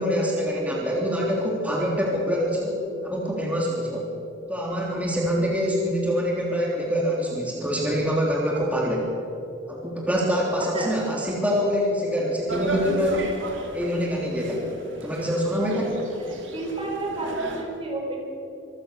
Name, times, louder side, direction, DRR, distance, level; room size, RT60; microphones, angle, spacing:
voice 1, 0.0-4.1 4.5-9.1 9.7-13.2 13.7-14.7 15.0-16.0, equal, 10° right, -3 dB, 3.4 m, -25 dB
sound 1, 12.5-17.6, right 2 dB, 85° right, 3.1 m, -34 dB
voice 2, 16.3-18.2, right 2 dB, 30° right, 0 dB, 4.6 m, -31 dB
25.5 x 15.5 x 6.9 m, 2.8 s
head